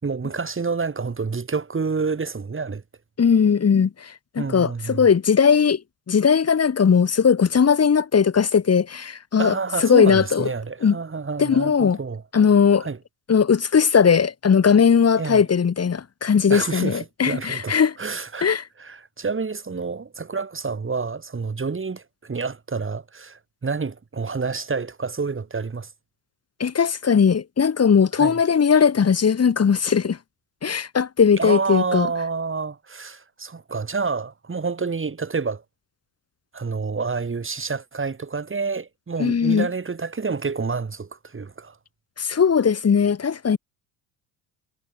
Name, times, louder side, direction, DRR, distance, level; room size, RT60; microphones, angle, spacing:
voice 1, 0.0-2.8 4.4-5.1 9.4-12.2 12.8-13.0 15.2-15.4 16.5-18.5 18.8-25.9 28.1-28.4 31.4-35.6 36.5-41.8, right 4 dB, 25° right, 6.6 m, -28 dB
voice 2, 3.2-5.8 6.1-9.5 9.8-10.5 10.8-11.0 11.4-12.0 12.3-12.9 13.3-17.9 18.4-18.6 26.6-30.2 30.6-32.1 39.2-39.7 42.2-43.6, left 6 dB, 30° left, 2.8 m, -18 dB
supercardioid pair, 80°, 47 cm